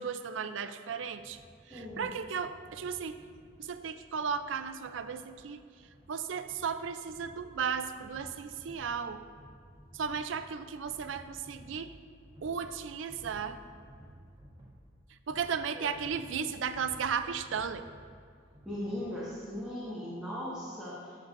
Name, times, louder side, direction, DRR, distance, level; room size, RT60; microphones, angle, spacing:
voice 1, 0.0-1.4 1.7-3.2 3.6-5.6 6.1-9.2 9.9-11.9 12.4-13.6 15.3-17.9, right 6 dB, 85° right, 11 dB, 0.4 m, -35 dB
sound 1, 1.2-19.6, equal, 35° right, 2.0 m, -55 dB
voice 2, 1.7-2.1 15.7-15.9 18.6-21.2, left 1 dB, 5° right, -10 dB, 1.5 m, -38 dB
13.5 x 6.6 x 2.6 m, 2.3 s
head